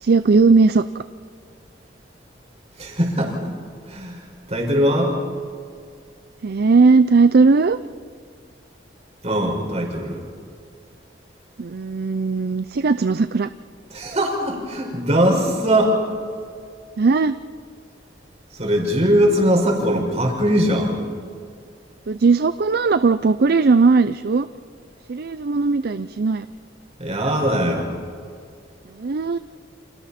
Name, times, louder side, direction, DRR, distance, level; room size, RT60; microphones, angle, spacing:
voice 1, 0.0-1.0 6.4-7.8 11.6-13.5 17.0-17.3 22.1-24.5 25.1-26.5 29.0-29.4, right 4 dB, 55° right, 12 dB, 0.5 m, -17 dB
voice 2, 2.8-3.5 3.8-5.1 9.2-10.2 13.9-16.0 18.5-21.0 27.0-27.9, equal, 35° right, 0 dB, 5.3 m, -20 dB
29.5 x 27.0 x 4.3 m, 2.2 s
head